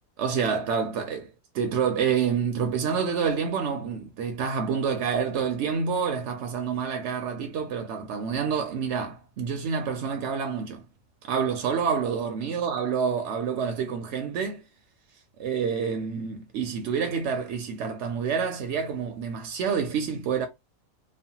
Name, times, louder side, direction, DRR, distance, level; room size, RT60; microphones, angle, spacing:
voice 1, 0.2-1.3 1.5-10.8 11.2-14.6 15.4-20.5, right 6 dB, 70° right, 0.7 m, -28 dB
3.1 x 2.0 x 2.7 m
omnidirectional pair, 1.7 m